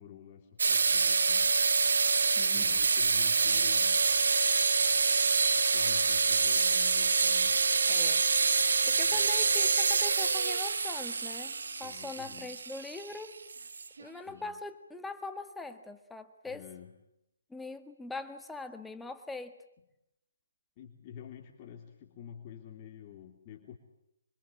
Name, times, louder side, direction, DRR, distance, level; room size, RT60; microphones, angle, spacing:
voice 1, 0.0-1.6 2.5-4.1 5.5-7.6 9.1-9.5 11.8-12.6 14.3-14.6 16.4-17.0 20.8-23.8, left 9 dB, 30° left, 1 dB, 3.1 m, -49 dB
sound 1, 0.6-14.0, right 4 dB, 75° right, 1.4 m, -26 dB
voice 2, 2.4-2.9 7.9-8.2 8.9-11.5 11.8-13.4 14.0-16.7 17.5-19.6, left 3 dB, 5° left, 7 dB, 1.7 m, -42 dB
26.5 x 24.5 x 8.7 m, 0.85 s
hypercardioid pair, 155°, 0 cm